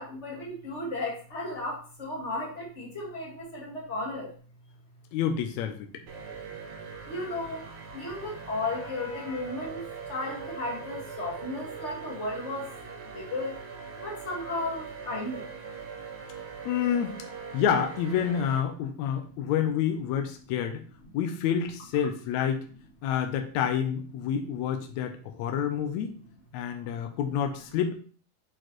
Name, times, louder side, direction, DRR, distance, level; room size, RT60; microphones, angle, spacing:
voice 1, 0.0-4.3 7.1-7.6 7.9-12.7 13.1-13.5 14.0-15.5, left 2 dB, 25° left, -3 dB, 1.7 m, -34 dB
voice 2, 5.1-6.0 16.7-17.2 17.5-20.8 21.1-22.7 23.0-26.1 26.5-27.9, left 8 dB, 75° left, 5 dB, 1.8 m, -28 dB
sound 1, 6.1-18.6, right 5 dB, 70° right, 2.3 m, -41 dB
8.7 x 4.4 x 3.1 m, 0.40 s
omnidirectional pair, 3.7 m